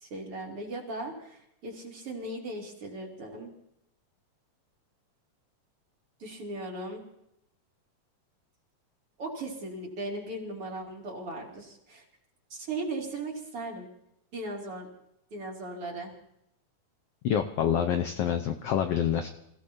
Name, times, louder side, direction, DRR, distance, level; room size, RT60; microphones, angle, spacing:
voice 1, 0.0-3.5 6.2-7.0 9.2-12.1 12.5-13.9 14.3-14.9 15.3-16.1, right 2 dB, 45° right, -1 dB, 3.5 m, -37 dB
voice 2, 17.2-19.3, left 9 dB, 80° left, 7 dB, 1.3 m, -27 dB
28.5 x 16.0 x 2.7 m, 0.78 s
omnidirectional pair, 3.8 m